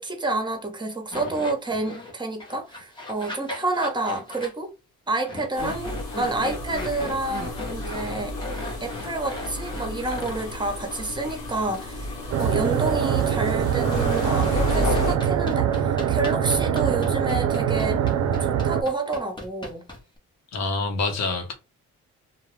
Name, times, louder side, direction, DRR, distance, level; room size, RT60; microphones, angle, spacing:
voice 1, 0.0-4.7 5.1-8.4 8.8-18.0 18.4-19.8, right 2 dB, 15° right, 0.8 m, -29 dB
sound 1, 1.1-2.1 2.4-4.5 5.2-10.5 10.9-11.0 11.7-11.9 13.9-20.2, left 2 dB, 15° left, 0.8 m, -37 dB
sound 2, 5.5-15.2, left 2 dB, 85° left, 0.8 m, -32 dB
sound 3, 12.3-18.8, right 9 dB, 65° right, 0.4 m, -23 dB
voice 2, 20.5-21.5, left 3 dB, 60° left, 0.8 m, -26 dB
2.2 x 2.0 x 3.1 m
cardioid pair, 90°, 30 cm